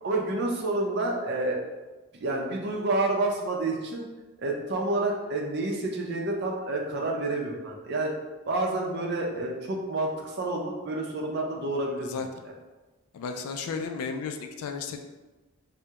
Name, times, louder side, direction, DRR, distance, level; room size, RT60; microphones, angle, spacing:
voice 1, 0.0-1.6 2.2-4.1 4.4-8.1 8.5-12.1, right 2 dB, 50° right, -1 dB, 0.5 m, -29 dB
voice 2, 13.1-15.0, left 5 dB, 80° left, 6 dB, 0.3 m, -33 dB
3.4 x 2.1 x 2.8 m, 1.2 s
head